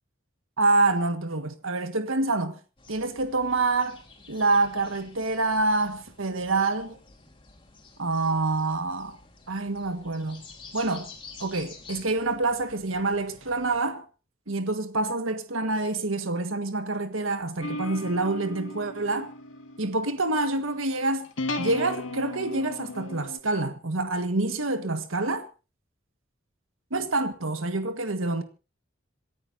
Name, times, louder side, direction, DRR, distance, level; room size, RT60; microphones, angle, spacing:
voice 1, 0.6-2.6 2.9-4.0 4.3-7.0 8.0-9.2 9.5-10.4 10.7-11.1 11.4-14.1 14.5-19.3 19.8-21.3 21.6-25.5 26.9-28.4, right 2 dB, 90° right, 1.6 m, -27 dB
sound 1, 2.8-13.8, left 4 dB, 25° left, 3.5 m, -50 dB
sound 2, 17.6-23.4, left 2 dB, 80° left, 2.0 m, -36 dB
27.5 x 14.5 x 2.7 m
head